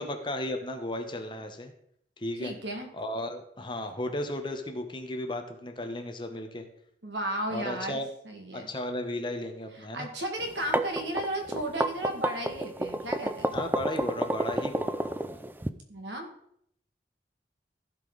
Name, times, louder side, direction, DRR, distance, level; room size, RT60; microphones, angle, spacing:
voice 1, 0.0-1.7 2.2-2.5 2.9-6.7 7.5-8.1 8.5-10.1 13.5-15.5, left 1 dB, 25° left, 5 dB, 1.1 m, -35 dB
voice 2, 2.4-2.9 7.0-8.7 9.9-13.5 15.9-16.3, right 1 dB, 85° right, 2 dB, 2.1 m, -34 dB
sound 1, 10.5-15.7, right 1 dB, 10° right, 0.4 m, -29 dB
15.0 x 5.3 x 4.0 m, 0.69 s
head